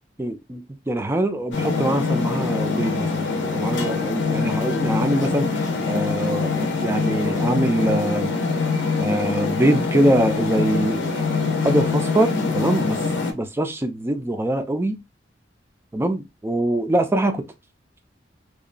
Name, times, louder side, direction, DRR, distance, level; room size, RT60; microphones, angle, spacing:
voice 1, 0.2-5.6 5.9-8.3 9.0-11.2 11.6-13.0 13.3-15.0 15.9-17.4, right 1 dB, 15° right, 0.3 m, -23 dB
sound 1, 1.5-13.3, left 4 dB, 70° left, 0.6 m, -24 dB
2.8 x 2.2 x 2.4 m
head